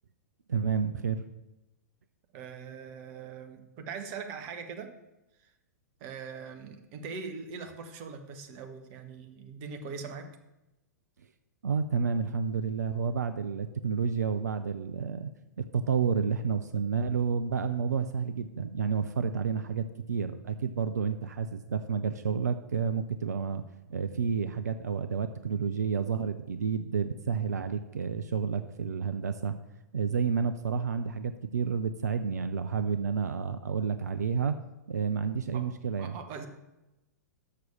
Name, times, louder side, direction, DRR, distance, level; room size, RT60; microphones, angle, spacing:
voice 1, 0.5-1.2 11.6-15.3 15.6-23.6 23.9-29.6 29.9-34.6 34.9-36.2, right 6 dB, 70° right, 10 dB, 0.5 m, -30 dB
voice 2, 2.3-5.0 5.4-5.5 6.0-10.3 35.5-35.7 36.0-36.5, right 5 dB, 40° right, 6 dB, 1.1 m, -41 dB
6.7 x 6.1 x 7.0 m, 0.98 s
figure-of-eight pair, 105°, 9 cm